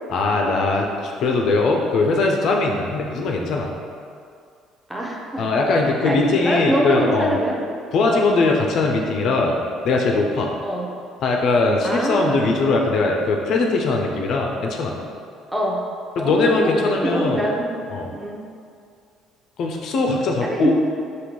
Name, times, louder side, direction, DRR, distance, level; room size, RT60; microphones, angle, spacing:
voice 1, 0.1-3.7 5.4-7.3 7.9-9.6 9.8-10.5 11.2-14.9 16.2-17.4 17.9-18.1 19.6-20.7, left 3 dB, 60° left, 1 dB, 0.3 m, -20 dB
voice 2, 4.9-5.5 5.9-7.6 8.1-8.2 10.6-10.9 11.8-12.4 15.5-15.8 16.2-17.7 18.1-18.4 20.4-20.7, right 1 dB, 10° right, -2 dB, 0.6 m, -24 dB
3.5 x 2.2 x 2.9 m, 2.3 s
hypercardioid pair, 55°, 0 cm